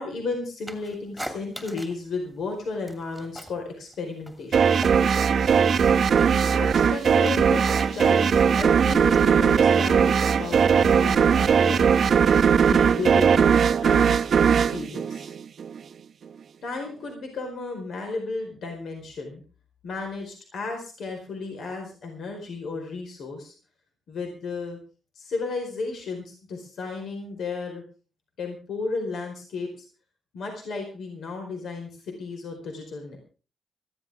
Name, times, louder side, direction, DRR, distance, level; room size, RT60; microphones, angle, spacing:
voice 1, 0.0-4.8 6.3-7.7 7.9-11.8 12.6-13.3 13.8-14.2 14.5-15.3 16.6-19.4 19.8-23.5 24.1-24.8 25.1-27.8 28.4-29.8 30.3-33.2, left 3 dB, 70° left, 3 dB, 4.7 m, -34 dB
sound 1, 0.7-2.1 2.4-3.6 3.9-5.3 5.6-11.0, equal, 5° left, 2.6 m, -42 dB
sound 2, 4.5-15.8, right 7 dB, 55° right, 0.9 m, -19 dB
19.5 x 15.0 x 3.7 m, 0.36 s
cardioid pair, 135°, 0 cm